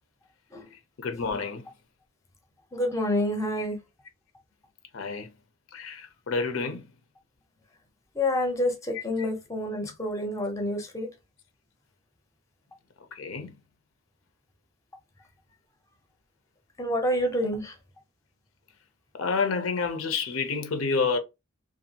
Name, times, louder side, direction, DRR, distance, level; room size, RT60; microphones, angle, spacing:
voice 1, 1.0-1.7 3.6-3.7 4.9-5.3 5.7-6.9 8.9-9.3 13.1-13.5 19.1-21.2, left 4 dB, 80° left, 0.6 m, -29 dB
voice 2, 2.7-3.8 8.2-11.1 16.8-17.7, left 1 dB, 15° left, 0.6 m, -28 dB
2.6 x 2.2 x 2.7 m
head